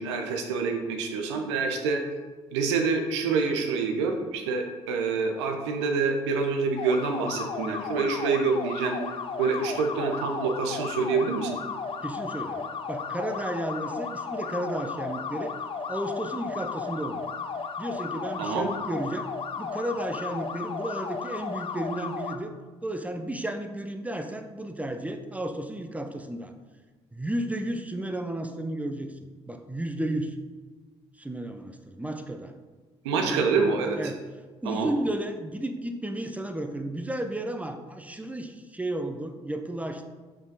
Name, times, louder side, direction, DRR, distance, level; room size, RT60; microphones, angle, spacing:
voice 1, 0.0-2.0 2.5-9.0 9.4-11.5 18.4-18.7 33.0-34.0 34.6-34.9, right 4 dB, 80° right, 4 dB, 0.7 m, -26 dB
sound 1, 6.8-22.4, left 5 dB, 40° left, 0.5 m, -34 dB
voice 2, 12.0-15.5 15.9-17.2 17.8-19.3 19.6-22.5 22.8-26.5 27.1-29.2 29.5-30.3 31.2-32.5 33.2-33.5 34.0-34.2 34.6-40.1, right 1 dB, 10° right, 6 dB, 0.7 m, -33 dB
5.3 x 4.8 x 4.0 m, 1.3 s
hypercardioid pair, 50°, 14 cm